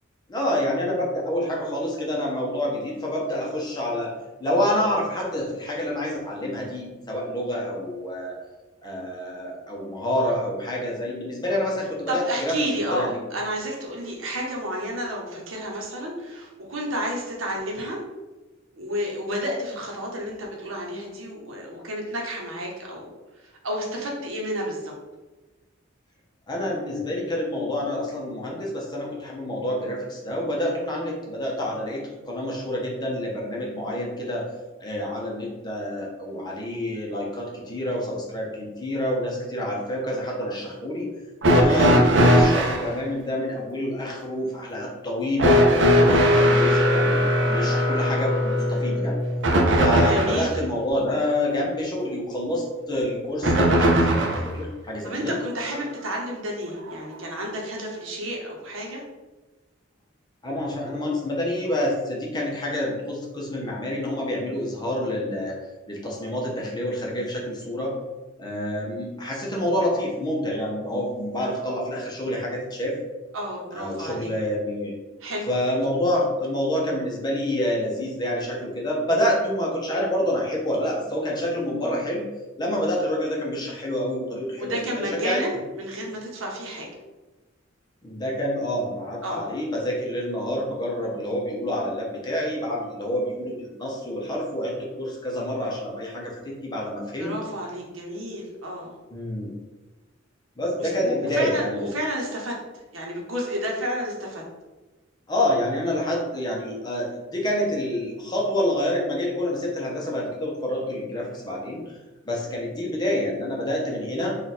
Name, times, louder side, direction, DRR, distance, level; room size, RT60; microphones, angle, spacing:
voice 1, 0.3-4.1 4.4-8.4 8.8-13.2 26.5-34.4 34.8-41.1 41.5-45.7 46.0-47.2 47.4-49.2 49.8-55.3 60.4-65.6 65.9-67.9 68.4-73.0 73.7-74.9 75.5-82.2 82.6-85.4 88.0-97.3 99.1-99.5 100.6-101.9 105.3-111.8 112.3-114.4, left 1 dB, 20° left, -2 dB, 0.8 m, -27 dB
voice 2, 12.1-18.0 18.8-23.1 23.4-24.9 41.5-41.8 50.1-50.6 55.0-59.0 73.3-74.3 75.2-75.5 84.6-86.9 89.2-89.4 97.1-98.9 100.8-102.6 102.9-104.4, equal, 85° right, -1 dB, 1.0 m, -31 dB
sound 1, 41.4-42.9 45.4-50.5 53.4-54.5 55.7-55.8 56.9-57.0, equal, 65° right, 0.6 m, -19 dB
3.7 x 2.4 x 4.2 m, 1.2 s
head